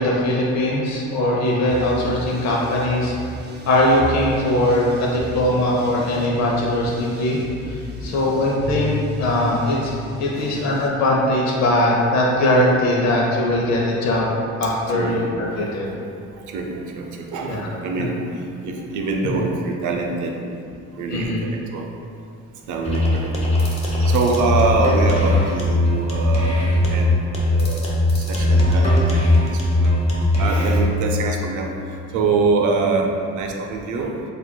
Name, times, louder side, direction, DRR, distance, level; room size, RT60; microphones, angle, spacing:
voice 1, 0.0-3.1 3.7-9.9 10.2-14.3 14.6-15.9 17.4-17.7 19.3-19.5 21.1-21.4, left 1 dB, 65° left, -4 dB, 0.7 m, -20 dB
sound 1, 1.6-10.9, equal, 35° right, 0.5 m, -33 dB
voice 2, 15.5-15.9 16.3-21.9 22.7-27.2 27.5-30.0 30.4-34.2, right 3 dB, 80° right, 1 dB, 0.6 m, -25 dB
sound 2, 22.8-30.9, left 1 dB, 20° left, 0.8 m, -19 dB
6.8 x 2.5 x 2.2 m, 2.4 s
cardioid pair, 90°, 30 cm